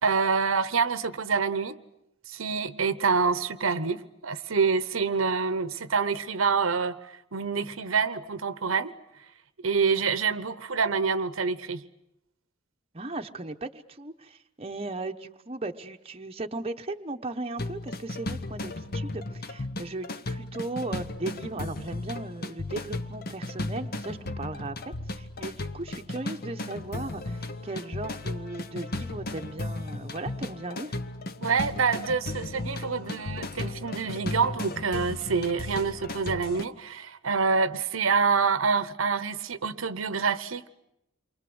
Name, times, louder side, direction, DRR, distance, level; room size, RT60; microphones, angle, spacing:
voice 1, 0.0-1.8 2.3-7.0 7.3-8.9 9.6-11.8 31.4-40.7, right 5 dB, 80° right, 1.0 m, -26 dB
voice 2, 12.9-24.8 25.1-31.0, right 2 dB, 30° right, 1.0 m, -37 dB
sound 1, 17.6-36.7, left 2 dB, 50° left, 1.1 m, -35 dB
29.0 x 23.5 x 7.9 m
head